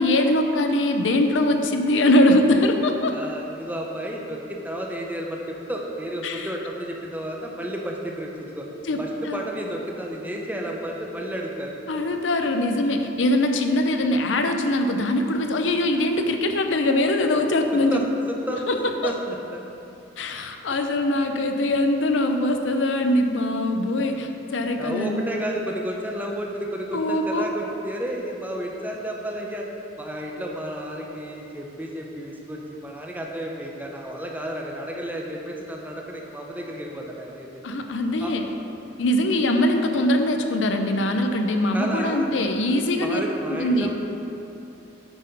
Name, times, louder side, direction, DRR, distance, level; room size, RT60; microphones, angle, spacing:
voice 1, 0.0-3.2 6.2-6.5 8.9-9.4 11.9-18.0 18.7-19.1 20.2-25.2 26.9-27.5 37.6-38.5 39.0-43.2 43.5-43.9, left 1 dB, 85° left, 5 dB, 0.6 m, -22 dB
voice 2, 3.1-8.6 9.0-11.8 17.7-18.7 19.0-19.6 23.9-24.3 24.8-29.7 30.0-37.5 38.2-38.3 41.7-42.3 43.0-43.9, equal, 10° right, 0 dB, 0.7 m, -32 dB
9.2 x 4.3 x 5.3 m, 2.8 s
head